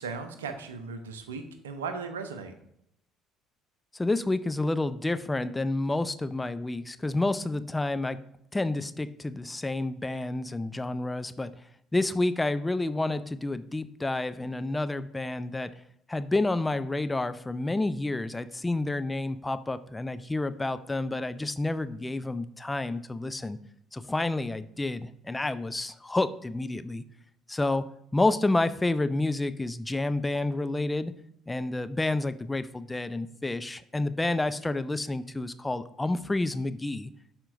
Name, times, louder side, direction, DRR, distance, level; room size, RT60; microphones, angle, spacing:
voice 1, 0.0-2.5, right 5 dB, 80° right, 8 dB, 0.7 m, -37 dB
voice 2, 3.9-8.2 8.5-11.5 11.9-15.7 16.1-23.6 23.9-27.0 27.5-27.9 28.1-31.1 31.5-37.1, left 2 dB, 15° left, 12 dB, 0.5 m, -29 dB
11.5 x 4.4 x 2.5 m, 0.75 s
figure-of-eight pair, 55°, 0 cm